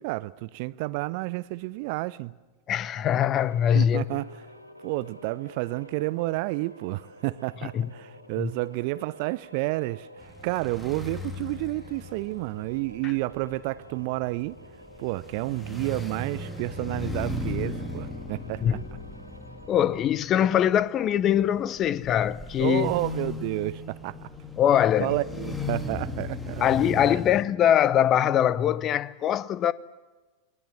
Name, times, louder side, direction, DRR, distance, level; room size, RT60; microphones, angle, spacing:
voice 1, 0.0-2.3 3.7-4.3 4.8-14.6 15.0-18.8 22.6-24.2 25.0-26.7, right 20 dB, 45° right, 0.7 m, -30 dB
voice 2, 2.7-4.0 7.7-7.9 8.4-8.5 18.6-18.8 19.7-22.9 24.6-25.1 26.6-29.7, left 10 dB, 30° left, 0.8 m, -22 dB
sound 1, 2.8-20.3, equal, 90° left, 2.9 m, -50 dB
sound 2, 10.2-27.4, left 2 dB, 5° left, 2.4 m, -37 dB
29.0 x 20.5 x 7.4 m
figure-of-eight pair, 90°, 0 cm